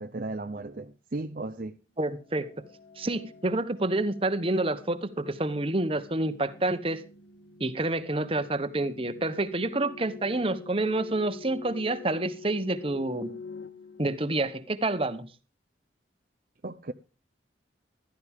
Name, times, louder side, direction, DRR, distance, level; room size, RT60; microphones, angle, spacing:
voice 1, 0.0-1.7 16.6-16.9, right 2 dB, 50° right, 0.6 m, -35 dB
voice 2, 2.0-2.7 3.0-7.0 7.6-13.3 14.0-15.3, right 2 dB, 30° right, 1.0 m, -28 dB
sound 1, 2.2-14.9, left 4 dB, 90° left, 1.3 m, -47 dB
14.5 x 13.0 x 3.6 m
head